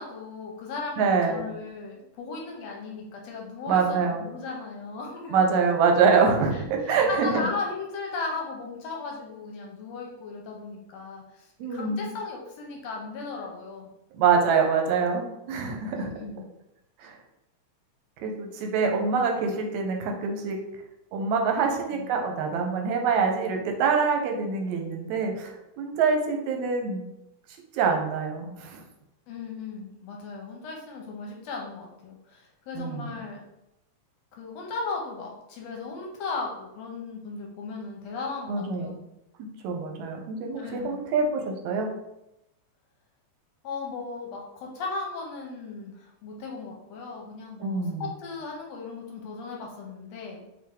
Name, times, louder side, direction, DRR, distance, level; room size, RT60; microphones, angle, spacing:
voice 1, 0.0-5.4 6.5-13.9 15.9-16.5 21.5-22.1 29.3-33.4 34.3-39.0 40.6-41.1 43.6-50.4, left 3 dB, 75° left, 0 dB, 1.8 m, -36 dB
voice 2, 1.0-1.4 3.7-4.2 5.3-7.3 11.6-12.1 14.1-16.1 17.0-17.1 18.2-20.6 21.1-27.1 27.7-28.8 32.8-33.1 38.5-38.9 39.6-41.9 47.6-48.0, right 5 dB, 80° right, 3 dB, 2.0 m, -25 dB
4.2 x 3.5 x 3.5 m, 0.87 s
omnidirectional pair, 3.3 m